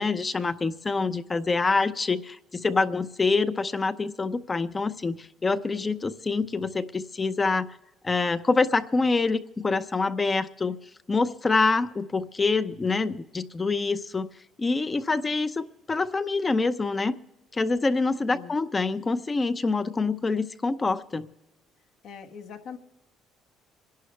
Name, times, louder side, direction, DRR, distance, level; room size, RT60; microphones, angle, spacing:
voice 1, 0.0-7.8 8.0-10.8 11.1-14.3 14.6-17.1 17.5-21.3, left 3 dB, 20° left, 12 dB, 0.7 m, -26 dB
voice 2, 22.0-22.8, left 6 dB, 60° left, 4 dB, 1.4 m, -42 dB
27.0 x 11.5 x 3.3 m, 1.0 s
cardioid pair, 140°, 0 cm